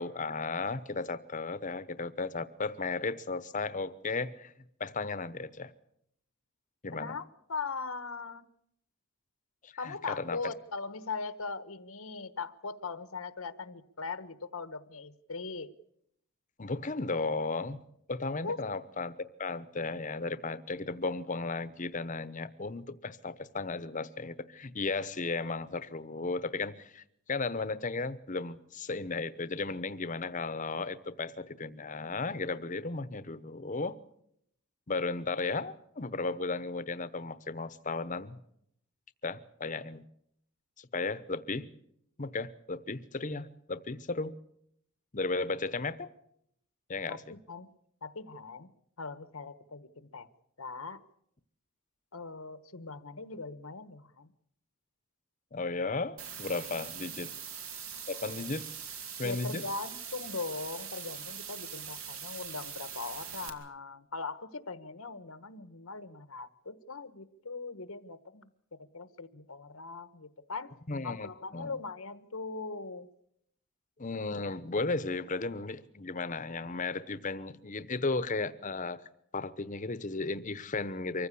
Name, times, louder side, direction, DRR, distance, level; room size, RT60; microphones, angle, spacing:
voice 1, 0.0-4.5 4.8-5.7 6.8-7.2 9.6-10.5 16.6-17.8 18.1-27.0 27.3-34.0 34.9-38.4 39.2-40.0 40.8-41.7 42.2-44.4 45.1-46.1 46.9-47.2 55.5-57.3 58.1-58.7 59.2-59.6 70.9-71.7 74.0-79.0 79.3-81.3, left 3 dB, 35° left, 0.9 m, -35 dB
voice 2, 6.9-8.5 9.8-15.7 18.4-18.6 47.1-47.7 48.0-50.3 50.6-51.0 52.1-54.3 56.7-57.4 59.2-68.5 68.9-70.7 71.0-73.1, left 4 dB, 80° left, 1.2 m, -40 dB
sound 1, 56.2-63.5, right 7 dB, 75° right, 2.7 m, -42 dB
24.5 x 15.0 x 8.5 m
head